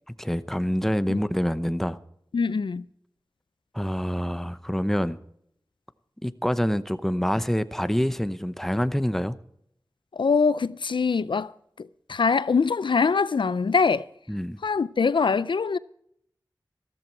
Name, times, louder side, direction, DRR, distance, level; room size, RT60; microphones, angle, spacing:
voice 1, 0.2-2.0 3.7-5.2 6.2-9.4 14.3-14.6, equal, 5° left, 0.8 m, -26 dB
voice 2, 2.3-2.8 10.1-11.5 11.8-14.1 14.6-15.8, left 5 dB, 85° left, 0.4 m, -23 dB
14.0 x 13.5 x 4.6 m
wide cardioid pair, 55°, 8 cm